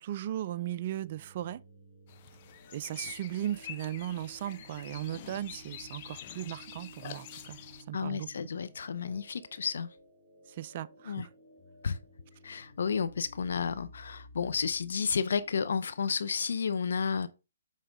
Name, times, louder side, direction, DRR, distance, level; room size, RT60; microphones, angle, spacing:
voice 1, 0.0-1.6 2.7-7.6 7.9-8.3 10.5-11.3, right 12 dB, 45° right, 0.4 m, -37 dB
sound 1, 0.6-16.6, equal, 5° right, 2.1 m, -55 dB
sound 2, 2.1-7.8, left 10 dB, 40° left, 0.7 m, -47 dB
voice 2, 7.9-9.9 11.1-11.3 11.8-12.0 12.4-17.3, left 6 dB, 70° left, 0.6 m, -31 dB
7.4 x 4.9 x 3.5 m
hypercardioid pair, 145°, 0 cm